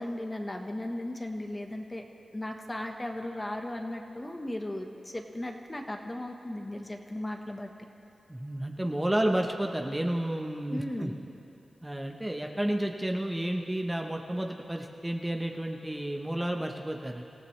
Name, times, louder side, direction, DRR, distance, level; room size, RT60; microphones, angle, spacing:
voice 1, 0.0-2.0 2.3-7.9 10.7-11.2, left 1 dB, 20° left, 3 dB, 1.3 m, -36 dB
voice 2, 8.3-11.1 11.8-17.2, right 1 dB, 15° right, 2 dB, 1.0 m, -31 dB
26.0 x 15.0 x 3.3 m, 2.8 s
cardioid pair, 65°, 0 cm